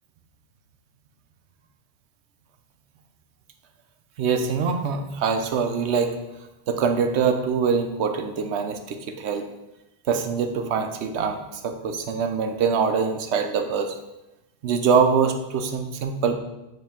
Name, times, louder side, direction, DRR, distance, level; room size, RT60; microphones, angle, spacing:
voice 1, 4.2-6.1 6.7-9.4 10.1-14.0 14.6-16.3, right 6 dB, 75° right, 6 dB, 0.9 m, -24 dB
8.7 x 3.2 x 3.5 m, 0.96 s
omnidirectional pair, 1.2 m